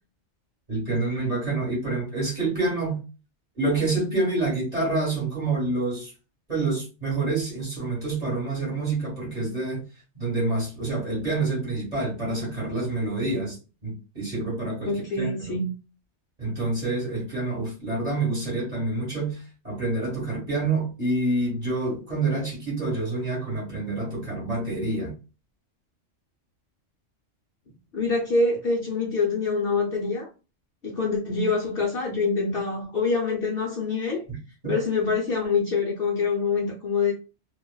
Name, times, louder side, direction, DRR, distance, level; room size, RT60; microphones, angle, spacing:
voice 1, 0.7-3.0 3.5-6.1 6.5-9.8 10.1-13.6 13.8-15.6 16.4-25.1 34.6-34.7, right 2 dB, 30° right, 1.8 m, -27 dB
voice 2, 14.9-15.7 27.9-30.3 30.8-34.2 34.7-37.1, left 4 dB, 50° left, 0.9 m, -25 dB
3.0 x 2.4 x 2.3 m
omnidirectional pair, 1.3 m